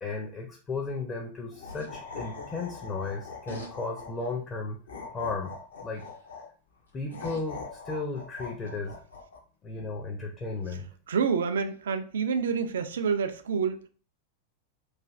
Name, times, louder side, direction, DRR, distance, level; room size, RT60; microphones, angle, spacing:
voice 1, 0.0-4.8 5.1-6.0 6.9-9.0 9.6-10.8, left 3 dB, 25° left, 0.5 m, -35 dB
sound 1, 1.5-4.3 4.9-6.5 7.1-9.4, left 4 dB, 65° left, 0.6 m, -42 dB
sound 2, 1.7-1.9 3.5-3.7 4.2-4.5 5.9-6.2 6.9-7.5 8.5-8.6, right 1 dB, 90° left, 1.1 m, -46 dB
voice 2, 11.1-13.8, right 6 dB, 65° right, 0.3 m, -28 dB
3.2 x 2.3 x 2.4 m
figure-of-eight pair, 90°, 0 cm